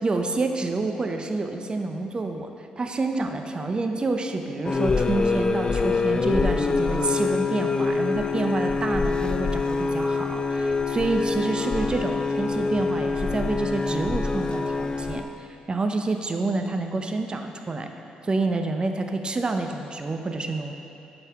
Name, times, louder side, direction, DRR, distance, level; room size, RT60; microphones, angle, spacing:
voice 1, 0.0-2.5 2.8-17.9 18.2-20.7, right 3 dB, 35° right, 5 dB, 0.6 m, -28 dB
sound 1, 4.6-15.2, left 4 dB, 30° left, 0.3 m, -25 dB
8.5 x 5.4 x 3.6 m, 2.9 s
cardioid pair, 70°, 3 cm